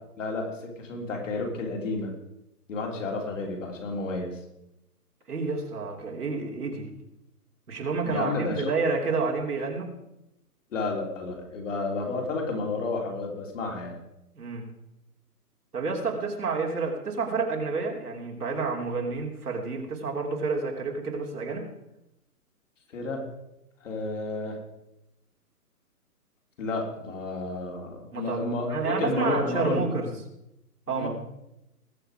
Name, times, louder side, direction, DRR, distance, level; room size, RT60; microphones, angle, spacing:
voice 1, 0.2-2.1 2.7-4.4 8.0-8.7 10.7-13.9 22.9-23.2 23.8-24.6 26.6-29.8 30.9-31.1, left 3 dB, 50° left, 1 dB, 3.6 m, -31 dB
voice 2, 5.3-6.9 7.7-9.9 14.3-14.6 15.7-21.7 28.1-30.1 30.9-31.1, right 4 dB, 75° right, 0 dB, 3.3 m, -29 dB
20.0 x 7.3 x 5.0 m, 0.88 s
hypercardioid pair, 145°, 46 cm